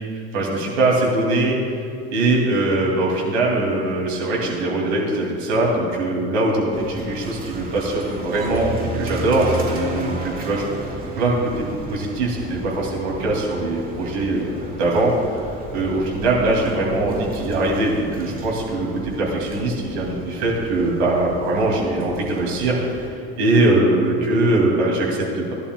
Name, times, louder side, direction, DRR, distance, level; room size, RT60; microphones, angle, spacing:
voice 1, 0.1-1.6 2.1-10.7 11.1-25.5, right 2 dB, 70° right, -2 dB, 2.7 m, -21 dB
sound 1, 6.7-23.1, right 2 dB, 25° right, 2.1 m, -34 dB
17.5 x 11.5 x 2.3 m, 2.4 s
hypercardioid pair, 65°, 33 cm